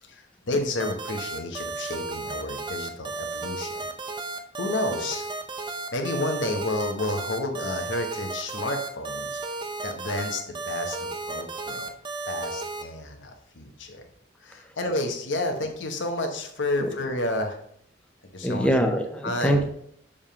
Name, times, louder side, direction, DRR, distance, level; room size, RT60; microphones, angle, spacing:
voice 1, 0.0-3.9 4.5-5.3 5.9-11.9 12.2-14.1 14.4-17.6 18.3-18.7 19.2-19.6, left 2 dB, 85° left, 4 dB, 1.1 m, -30 dB
sound 1, 0.8-12.8, right 3 dB, 25° right, 0.6 m, -34 dB
voice 2, 18.4-19.7, equal, 5° left, 4 dB, 0.7 m, -24 dB
7.1 x 3.7 x 5.6 m, 0.67 s
head